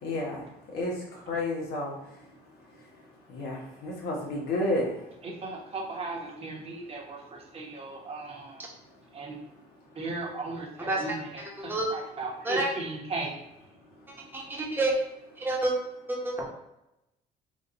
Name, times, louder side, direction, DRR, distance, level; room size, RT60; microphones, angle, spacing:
voice 1, 0.0-0.4 0.7-0.9 1.3-1.9 3.3-4.9, left 1 dB, 70° left, -2 dB, 1.4 m, -30 dB
voice 2, 5.2-8.7 9.1-9.4 9.9-13.3, right 3 dB, 35° right, -1 dB, 1.1 m, -37 dB
voice 3, 10.8-11.2 11.6-11.9 12.4-12.7 14.3-14.9 15.4-15.7 16.1-16.4, right 2 dB, 10° right, -2 dB, 1.1 m, -28 dB
3.9 x 2.6 x 3.8 m, 0.89 s
cardioid pair, 110°, 17 cm